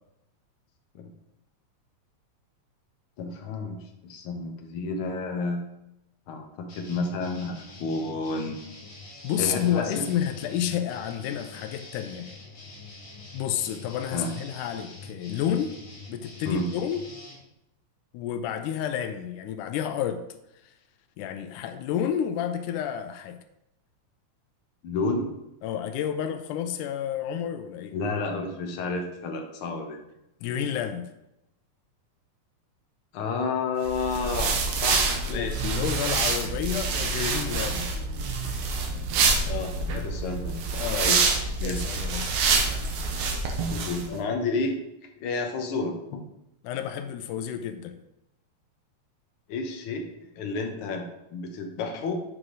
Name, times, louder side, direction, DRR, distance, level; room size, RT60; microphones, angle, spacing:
voice 1, 3.2-5.6 6.3-8.6 9.4-10.0 14.1-14.3 16.4-16.7 24.8-25.3 27.9-30.0 33.1-35.7 39.4-41.2 41.6-41.8 43.7-44.8 45.2-46.2 49.5-50.0 50.4-51.0 51.3-52.2, left 3 dB, 70° left, 3 dB, 1.3 m, -31 dB
sound 1, 6.7-17.4, left 2 dB, 45° left, 1.9 m, -45 dB
voice 2, 9.2-12.4 13.3-15.8 16.1-17.0 18.1-20.2 20.7-20.8 21.2-23.4 25.6-28.0 30.4-31.1 35.3-37.9 40.8-41.2 41.6-42.3 46.6-48.0, left 9 dB, 85° left, 8 dB, 2.1 m, -30 dB
sound 2, 33.9-44.1, right 4 dB, 70° right, 2.2 m, -27 dB
7.5 x 4.9 x 3.9 m, 0.87 s
omnidirectional pair, 3.6 m